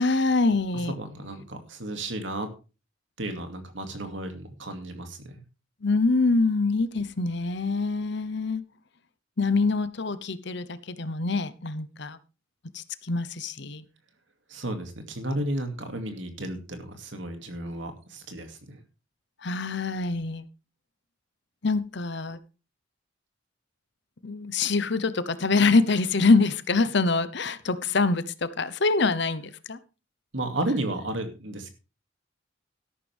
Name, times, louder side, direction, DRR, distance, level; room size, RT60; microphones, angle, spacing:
voice 1, 0.0-0.9 5.8-8.6 9.4-12.2 12.7-13.8 19.4-20.4 21.6-22.4 24.2-29.8, left 3 dB, 60° left, 1.0 m, -25 dB
voice 2, 0.8-2.5 3.2-5.4 14.5-18.8 30.3-31.7, right 1 dB, 70° right, 2.5 m, -33 dB
13.0 x 11.5 x 3.5 m
head